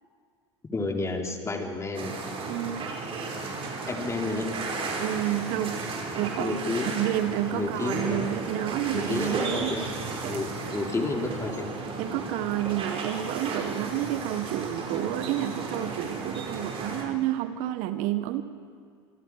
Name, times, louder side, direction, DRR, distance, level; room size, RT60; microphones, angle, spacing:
voice 1, 0.7-2.1 3.9-4.8 6.4-6.9 7.5-8.3 8.9-9.9 10.3-11.7, left 3 dB, 20° left, 2 dB, 3.5 m, -31 dB
sound 1, 1.9-17.0, right 3 dB, 35° right, 5.1 m, -34 dB
voice 2, 2.5-2.9 5.0-6.6 7.0-9.8 10.2-10.4 12.0-18.4, right 12 dB, 55° right, 11 dB, 1.1 m, -30 dB
25.5 x 25.0 x 4.8 m, 2.3 s
hypercardioid pair, 90°, 15 cm